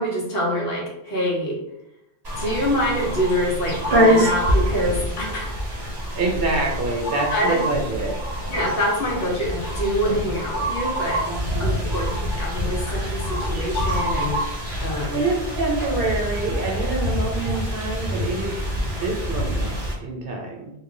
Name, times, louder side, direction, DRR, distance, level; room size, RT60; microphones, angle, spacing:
voice 1, 0.0-1.6 2.4-5.6 7.3-7.6 8.5-11.3 11.6-15.2 17.4-17.6, equal, 65° left, -4 dB, 1.2 m, -25 dB
sound 1, 2.2-19.9, equal, 25° right, 0.8 m, -25 dB
voice 2, 6.1-8.1 11.2-12.2 15.1-20.7, right 3 dB, 60° right, 0 dB, 0.9 m, -27 dB
3.1 x 2.3 x 3.7 m, 0.83 s
omnidirectional pair, 1.1 m